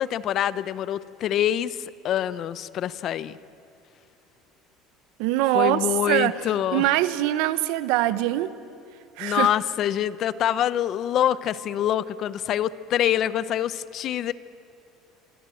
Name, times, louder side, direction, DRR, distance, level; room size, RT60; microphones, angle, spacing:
voice 1, 0.0-3.4 5.5-6.9 9.2-14.3, left 11 dB, 45° left, 16 dB, 0.7 m, -25 dB
voice 2, 5.2-6.3 6.7-8.5 9.2-9.5, right 15 dB, 80° right, 14 dB, 1.0 m, -23 dB
27.5 x 23.5 x 7.8 m, 2.5 s
cardioid pair, 150°, 0 cm